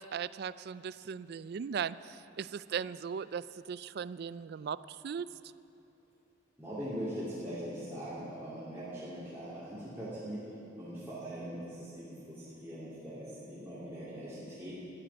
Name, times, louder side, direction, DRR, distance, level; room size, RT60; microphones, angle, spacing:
voice 1, 0.0-5.3, right 7 dB, 55° right, 17 dB, 0.3 m, -38 dB
voice 2, 6.6-10.5 10.8-14.7, equal, 10° right, -12 dB, 3.1 m, -41 dB
13.5 x 8.6 x 9.9 m, 3.0 s
head